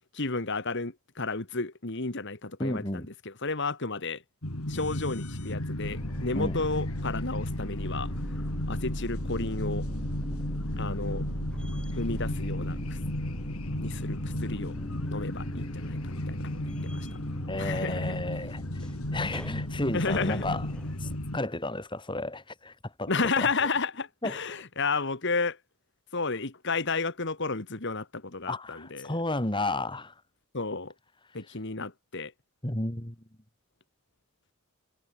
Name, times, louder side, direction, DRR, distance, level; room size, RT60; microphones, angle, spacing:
voice 1, 0.1-4.2 4.7-8.1 8.6-9.9 10.8-11.2 12.0-13.0 13.8-14.7 15.1-17.1 17.6-18.2 19.9-20.6 23.1-25.6 26.1-29.2 30.5-30.9 31.3-32.3, left 3 dB, 55° left, 1.8 m, -32 dB
voice 2, 2.6-3.1 6.3-6.6 17.5-18.6 19.1-20.7 21.0-22.7 23.0-23.1 24.2-24.3 28.5-30.1 32.6-33.1, left 2 dB, 20° left, 2.6 m, -32 dB
sound 1, 4.4-21.4, left 1 dB, 80° left, 3.5 m, -34 dB
sound 2, 5.8-21.2, equal, 5° left, 3.5 m, -39 dB
head